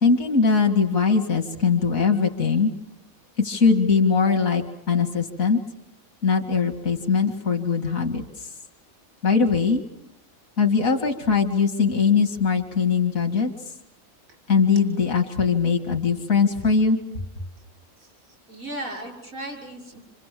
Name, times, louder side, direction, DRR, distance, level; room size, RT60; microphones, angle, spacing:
voice 1, 0.0-2.7 3.4-5.6 6.2-8.5 9.2-9.8 10.6-13.5 14.5-17.0, left 5 dB, 80° left, 4 dB, 2.6 m, -21 dB
voice 2, 18.5-20.0, right 1 dB, 85° right, 2 dB, 6.3 m, -36 dB
27.5 x 26.5 x 7.6 m, 0.73 s
omnidirectional pair, 1.4 m